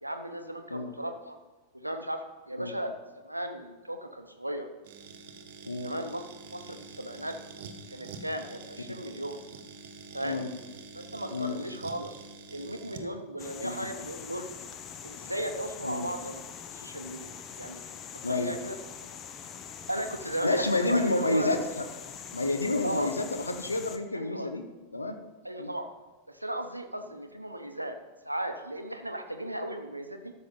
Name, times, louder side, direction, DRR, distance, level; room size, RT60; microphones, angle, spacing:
voice 1, 0.0-1.4 1.7-4.7 5.8-7.4 7.9-9.4 10.1-10.4 10.9-12.2 12.5-14.5 15.0-16.4 16.7-17.3 17.6-17.8 18.3-18.8 19.9-21.5 22.8-23.1 24.1-24.5 25.4-25.9 26.3-28.0 28.2-30.3, right 1 dB, 85° right, 6 dB, 0.7 m, -36 dB
sound 1, 4.8-13.1, right 4 dB, 55° right, 1.0 m, -46 dB
sound 2, 13.4-24.0, left 7 dB, 30° left, 0.8 m, -44 dB
voice 2, 20.4-21.6 22.3-24.6 24.9-25.2 25.6-25.7, left 2 dB, 80° left, 7 dB, 0.8 m, -29 dB
13.0 x 6.4 x 3.8 m, 1.1 s
figure-of-eight pair, 90°, 0 cm